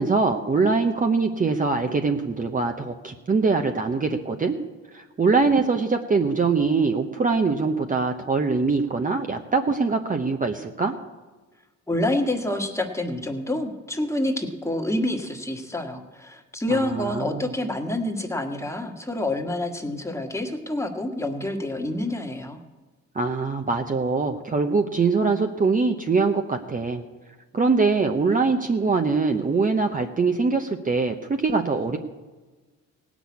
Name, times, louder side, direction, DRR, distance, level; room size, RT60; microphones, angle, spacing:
voice 1, 0.0-4.5 4.9-10.9 16.7-17.5 23.1-27.0 27.5-32.0, right 4 dB, 25° right, 5 dB, 0.9 m, -23 dB
voice 2, 11.9-22.6, left 1 dB, 10° left, 3 dB, 1.6 m, -27 dB
17.0 x 6.2 x 8.5 m, 1.3 s
cardioid pair, 90°, 30 cm